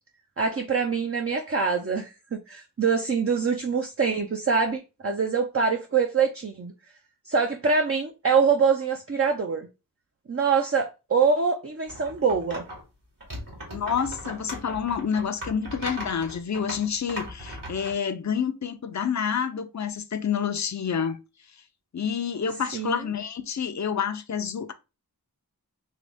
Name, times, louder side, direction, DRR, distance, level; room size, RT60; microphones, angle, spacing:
voice 1, 0.4-6.7 7.3-9.7 10.3-12.6 22.7-23.0, right 5 dB, 40° right, 0.6 m, -24 dB
sound 1, 11.9-12.8 13.2-18.0, equal, 65° right, 2.0 m, -38 dB
voice 2, 13.7-21.2 21.9-24.7, left 7 dB, 50° left, 0.6 m, -28 dB
3.8 x 3.0 x 3.5 m
wide cardioid pair, 45°, 37 cm